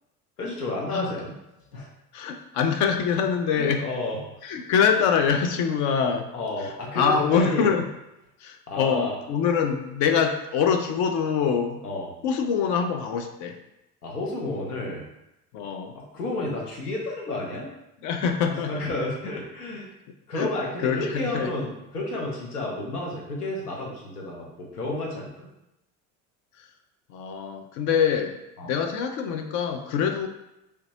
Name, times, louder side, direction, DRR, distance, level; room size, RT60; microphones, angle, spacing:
voice 1, 0.4-1.4 1.7-1.9 3.5-4.2 6.3-7.7 8.7-9.1 11.8-12.1 14.0-15.0 15.9-17.7 18.7-19.9 20.3-25.5 28.6-28.7, left 2 dB, 85° left, -2 dB, 0.8 m, -31 dB
voice 2, 2.1-3.9 4.4-6.3 6.6-7.8 8.4-11.8 12.2-13.6 15.5-15.9 18.0-18.9 20.3-20.5 20.8-21.5 26.6-26.7 27.1-28.4 28.6-30.3, left 6 dB, 45° left, 6 dB, 0.4 m, -24 dB
3.3 x 2.8 x 2.7 m, 0.88 s
figure-of-eight pair, 65°, 45 cm